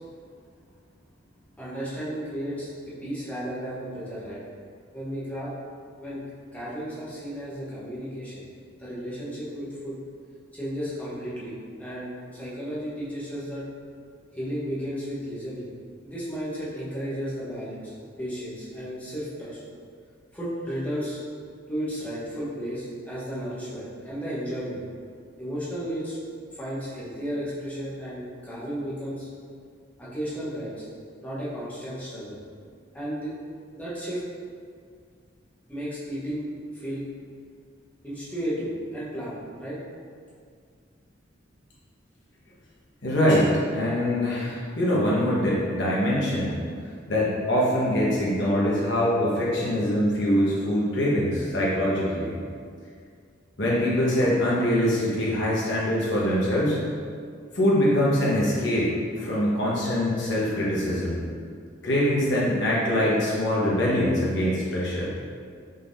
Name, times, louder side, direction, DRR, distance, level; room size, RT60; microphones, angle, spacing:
voice 1, 1.6-4.4 4.9-5.5 6.0-6.2 6.5-8.5 8.8-10.0 10.5-13.6 14.3-15.7 16.0-19.6 20.3-21.2 21.7-24.8 25.4-26.2 26.5-29.3 30.0-30.9 31.2-32.4 32.9-33.3 33.7-34.2 35.7-36.4 36.7-37.1 38.0-39.8, equal, 10° left, -9 dB, 1.1 m, -33 dB
voice 2, 43.0-46.6 47.1-52.3 53.6-56.8 57.5-61.2 61.8-65.1, equal, 60° left, -6 dB, 1.2 m, -23 dB
5.3 x 3.8 x 2.6 m, 2.1 s
head